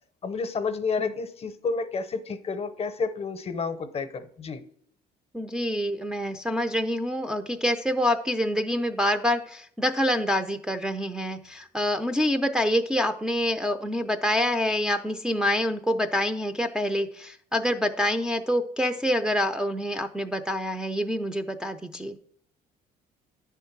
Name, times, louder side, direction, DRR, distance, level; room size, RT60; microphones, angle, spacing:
voice 1, 0.2-4.6, left 4 dB, 35° left, 11 dB, 0.7 m, -30 dB
voice 2, 5.3-22.2, equal, 5° right, 3 dB, 0.4 m, -26 dB
9.6 x 3.6 x 5.9 m, 0.63 s
cardioid pair, 110°, 17 cm